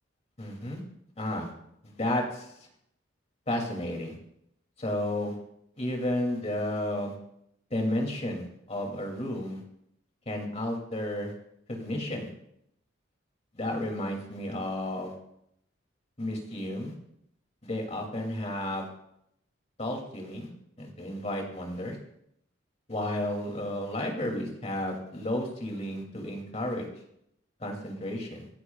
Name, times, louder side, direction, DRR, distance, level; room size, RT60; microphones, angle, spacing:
voice 1, 0.4-0.8 1.2-1.5 1.8-2.5 3.5-4.1 4.8-5.4 5.8-7.1 7.7-9.6 10.3-11.3 11.7-12.3 13.5-15.2 16.2-16.9 17.6-18.9 19.8-20.5 20.8-22.0 22.9-26.9 27.6-28.5, left 1 dB, 35° left, 1 dB, 2.7 m, -32 dB
25.5 x 11.0 x 2.4 m, 0.76 s
head